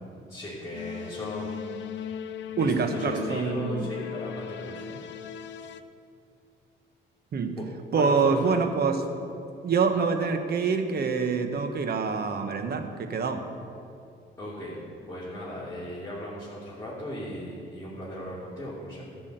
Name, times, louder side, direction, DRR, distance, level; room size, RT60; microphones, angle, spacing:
voice 1, 0.3-2.2 2.4-5.1 7.5-8.6 14.4-14.8 15.1-19.1, equal, 15° left, -10 dB, 3.0 m, -38 dB
sound 1, 0.7-5.8, left 8 dB, 65° left, 0.6 m, -37 dB
voice 2, 2.6-3.9 7.3-7.5 7.9-9.0 9.6-13.4, right 5 dB, 55° right, 7 dB, 1.2 m, -26 dB
13.5 x 6.2 x 7.8 m, 2.6 s
cardioid pair, 90°, 20 cm